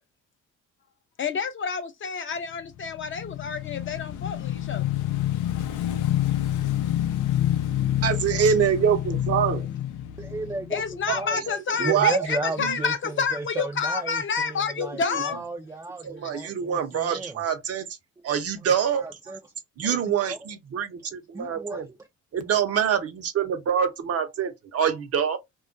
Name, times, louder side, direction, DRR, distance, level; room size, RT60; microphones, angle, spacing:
voice 1, 1.2-4.8 10.7-15.4, left 6 dB, 40° left, 0.5 m, -29 dB
Motorcycle / Engine, 2.8-11.3, left 12 dB, 90° left, 0.5 m, -27 dB
voice 2, 8.0-9.7 11.1-11.4 11.8-12.2 12.6-12.8 14.8-15.2 16.0-17.9 18.2-19.4 19.8-21.9 22.3-25.4, right 8 dB, 55° right, 0.7 m, -25 dB
voice 3, 10.2-10.8 11.1-17.4 18.3-18.4 18.9-19.4 19.8-20.4 21.3-22.0, right 2 dB, 10° right, 0.3 m, -34 dB
2.3 x 2.1 x 2.5 m
cardioid pair, 90°, 30 cm